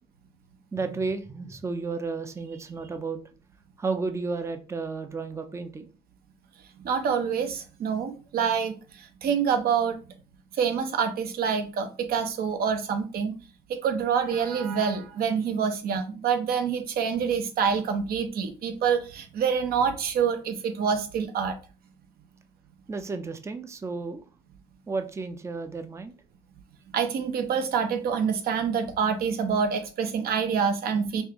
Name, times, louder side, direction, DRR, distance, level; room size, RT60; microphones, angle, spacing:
voice 1, 0.7-3.2 3.8-5.9 22.9-24.2 24.9-26.1, right 4 dB, 15° right, 8 dB, 0.5 m, -32 dB
voice 2, 6.8-10.0 10.6-13.3 13.7-21.6 26.9-31.2, right 6 dB, 60° right, 7 dB, 0.9 m, -26 dB
5.3 x 2.5 x 3.0 m, 0.35 s
cardioid pair, 110°, 17 cm